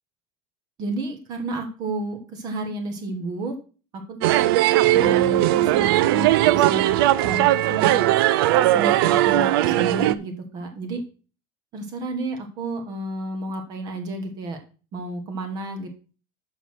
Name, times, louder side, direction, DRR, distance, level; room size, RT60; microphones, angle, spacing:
voice 1, 0.8-3.6 4.1-4.5 4.9-8.1 8.7-11.0 11.7-14.6 14.9-15.9, right 2 dB, 30° right, 4 dB, 1.3 m, -31 dB
sound 1, 4.2-10.1, right 14 dB, 60° right, 0.5 m, -19 dB
6.9 x 5.8 x 6.2 m, 0.37 s
supercardioid pair, 170°, 14 cm